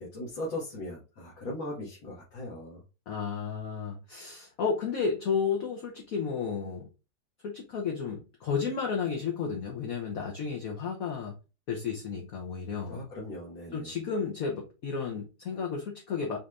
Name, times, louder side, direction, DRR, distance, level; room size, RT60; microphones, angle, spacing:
voice 1, 0.0-2.8 12.9-13.9, left 1 dB, 75° left, 2.4 m, -38 dB
voice 2, 3.1-6.9 7.4-11.3 11.7-13.0 13.7-16.4, left 5 dB, 55° left, 1.0 m, -32 dB
5.2 x 3.3 x 2.5 m
omnidirectional pair, 2.2 m